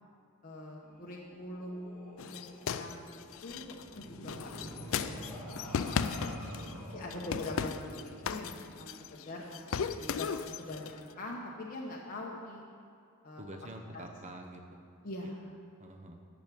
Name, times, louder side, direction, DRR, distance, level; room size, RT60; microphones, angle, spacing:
voice 1, 0.4-6.2 6.9-8.9 9.2-12.6 13.2-13.4 13.9-14.1 15.0-15.4, left 2 dB, 40° left, -3 dB, 0.9 m, -43 dB
sound 1, 0.8-9.8, equal, 5° left, 2.6 m, -48 dB
sound 2, 2.2-6.8 7.1-9.2 9.5-11.0, left 6 dB, 60° left, 0.4 m, -36 dB
voice 2, 6.4-7.0 13.4-14.8 15.8-16.2, right 1 dB, 30° right, 3 dB, 0.9 m, -47 dB
10.5 x 6.1 x 8.3 m, 2.4 s
head